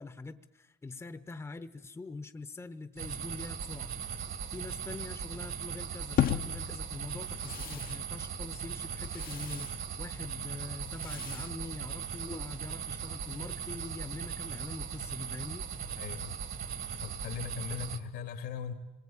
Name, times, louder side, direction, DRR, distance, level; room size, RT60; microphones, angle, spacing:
voice 1, 0.0-3.9 4.5-15.7, left 3 dB, 15° left, 11 dB, 0.9 m, -44 dB
sound 1, 3.0-18.0, right 7 dB, 55° right, 1.9 m, -39 dB
sound 2, 6.2-12.4, left 11 dB, 60° left, 1.0 m, -37 dB
voice 2, 15.8-16.4 17.0-18.7, left 7 dB, 85° left, 7 dB, 2.8 m, -39 dB
26.5 x 21.0 x 8.8 m, 1.1 s
cardioid pair, 110°, 17 cm